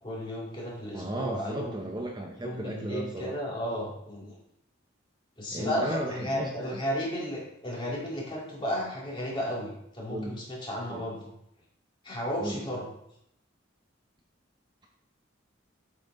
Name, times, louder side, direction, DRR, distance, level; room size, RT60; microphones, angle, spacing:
voice 1, 0.0-1.8 2.4-4.4 5.4-11.2 12.0-12.8, equal, 25° left, -3 dB, 2.2 m, -33 dB
voice 2, 0.9-3.4 5.5-6.8 10.1-10.4 10.9-11.0 12.4-12.7, right 1 dB, 20° right, 2 dB, 0.6 m, -35 dB
7.8 x 5.9 x 3.7 m, 0.76 s
head